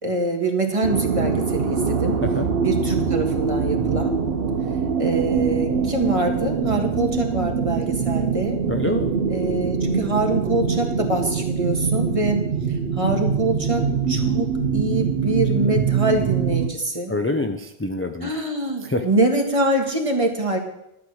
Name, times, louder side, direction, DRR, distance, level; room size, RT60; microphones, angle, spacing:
voice 1, 0.0-2.2 2.6-4.2 5.0-8.6 9.3-17.1 18.2-20.6, right 2 dB, 30° right, 3 dB, 1.7 m, -24 dB
sound 1, 0.8-16.7, right 6 dB, 65° right, 1.0 m, -23 dB
voice 2, 8.7-9.1 17.1-18.3 18.8-19.0, left 2 dB, 15° left, 5 dB, 0.5 m, -26 dB
12.0 x 7.9 x 6.3 m, 0.86 s
omnidirectional pair, 1.1 m